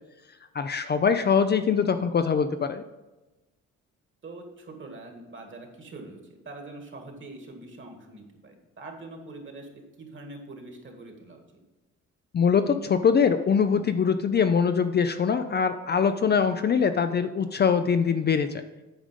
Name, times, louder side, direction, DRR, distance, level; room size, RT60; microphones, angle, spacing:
voice 1, 0.5-2.8 12.3-18.6, left 6 dB, 35° left, 9 dB, 0.5 m, -23 dB
voice 2, 4.2-11.6, right 2 dB, 40° right, 3 dB, 1.9 m, -44 dB
8.9 x 5.1 x 5.1 m, 1.1 s
cardioid pair, 90°, 30 cm